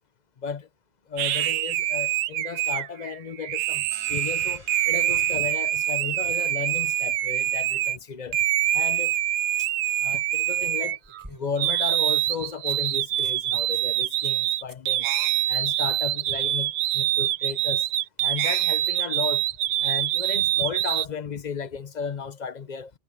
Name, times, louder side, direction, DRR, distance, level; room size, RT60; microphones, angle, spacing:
voice 1, 0.4-0.7 1.1-8.4 8.7-9.1 9.6-9.7 10.0-11.0 11.3-15.1 15.5-17.9 18.2-19.4 19.8-22.9, left 6 dB, 40° left, 0.9 m, -34 dB
sound 1, 1.2-8.0 8.3-11.2 11.6-21.1, right 13 dB, 80° right, 0.9 m, -25 dB
sound 2, 3.9-9.3, right 1 dB, 55° right, 5.5 m, -53 dB
sound 3, 9.0-9.1 10.5-11.8 12.2-12.3 12.7-12.8 13.1-13.4 13.7-13.9 14.2-14.4 14.7-14.9 15.1-15.2 18.3-18.4, equal, 15° right, 6.8 m, -50 dB
omnidirectional pair, 1.3 m